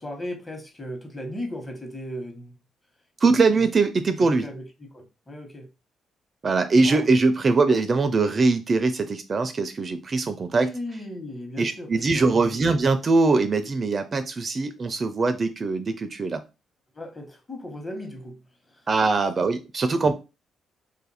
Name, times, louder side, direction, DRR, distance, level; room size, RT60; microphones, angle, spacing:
voice 1, 0.0-2.6 3.2-3.7 4.2-5.7 6.8-7.1 10.6-12.6 16.9-18.9, left 1 dB, 25° left, 1.1 m, -37 dB
voice 2, 3.2-4.5 6.4-10.7 11.6-16.4 18.9-20.1, right 3 dB, 40° right, 0.4 m, -22 dB
2.5 x 2.5 x 4.1 m
cardioid pair, 90°, 0 cm